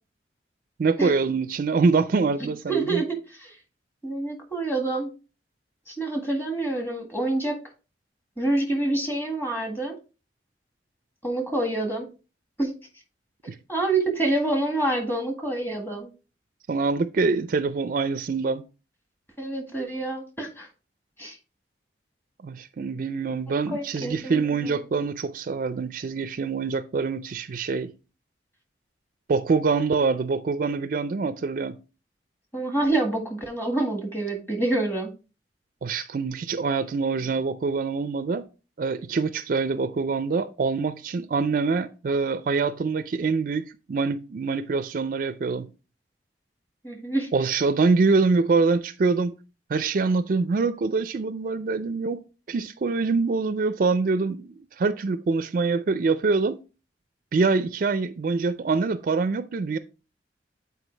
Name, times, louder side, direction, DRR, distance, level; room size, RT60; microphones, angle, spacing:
voice 1, 0.8-3.0 13.5-13.6 16.7-18.6 22.4-27.9 29.3-31.8 35.8-38.5 38.8-45.7 47.3-49.4 49.7-52.2 52.5-56.6 57.3-59.8, right 4 dB, 50° right, 0.4 m, -25 dB
voice 2, 2.4-3.5 4.0-5.1 5.9-7.6 8.4-9.9 11.2-12.1 12.6-12.7 13.7-16.1 19.4-20.7 21.2-21.3 23.7-24.8 32.5-35.1 46.8-47.3, right 2 dB, 15° left, 1.6 m, -27 dB
8.1 x 4.5 x 3.2 m
head